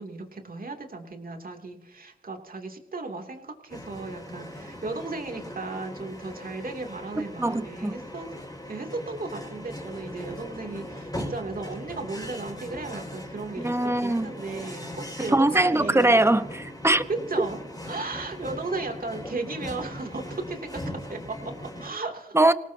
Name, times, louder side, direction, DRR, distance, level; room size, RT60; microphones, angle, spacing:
voice 1, 0.0-8.3 8.7-16.1 17.3-17.6 17.9-22.4, right 3 dB, 50° right, 3 dB, 2.8 m, -35 dB
sound 1, 3.7-21.9, left 1 dB, 20° left, 5.9 m, -39 dB
voice 2, 7.4-8.0 13.6-14.3 15.2-17.0 22.3-22.5, right 2 dB, 15° right, 12 dB, 1.1 m, -22 dB
25.5 x 18.0 x 2.8 m, 0.93 s
cardioid pair, 50°, 19 cm